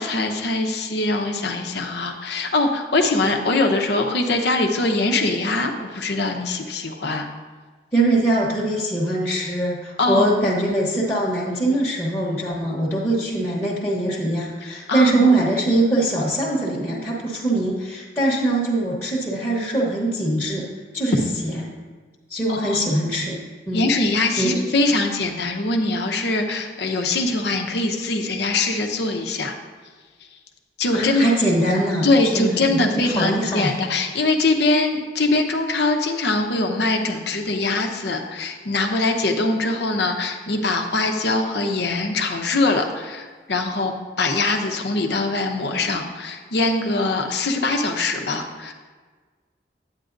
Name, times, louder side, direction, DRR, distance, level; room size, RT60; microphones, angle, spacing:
voice 1, 0.0-7.3 10.0-10.4 14.9-15.3 22.5-22.8 23.7-29.5 30.8-31.3 32.0-48.7, left 2 dB, 70° left, 3 dB, 0.8 m, -22 dB
voice 2, 7.9-20.7 20.9-21.2 21.4-21.6 22.3-23.4 23.7-23.9 24.4-24.6 30.9-33.7, right 1 dB, 15° left, -7 dB, 1.0 m, -22 dB
10.0 x 9.0 x 2.6 m, 1.4 s
head